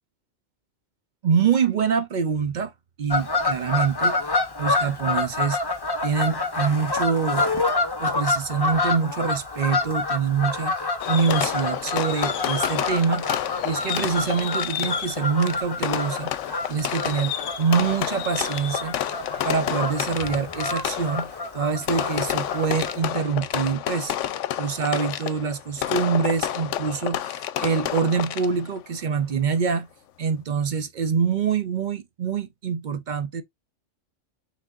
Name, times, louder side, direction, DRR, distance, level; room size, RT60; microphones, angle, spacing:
voice 1, 1.2-2.7 3.0-4.2 4.6-5.6 6.0-7.5 8.0-13.3 13.6-16.3 16.7-18.9 19.4-24.1 24.6-29.9 30.2-33.4, right 6 dB, 55° right, 0.5 m, -25 dB
Fowl / Bird vocalization bird call bird song, 3.1-23.0, left 3 dB, 25° left, 0.6 m, -28 dB
Fireworks, 11.0-28.8, left 11 dB, 75° left, 0.9 m, -29 dB
5.9 x 3.5 x 2.4 m
omnidirectional pair, 1.3 m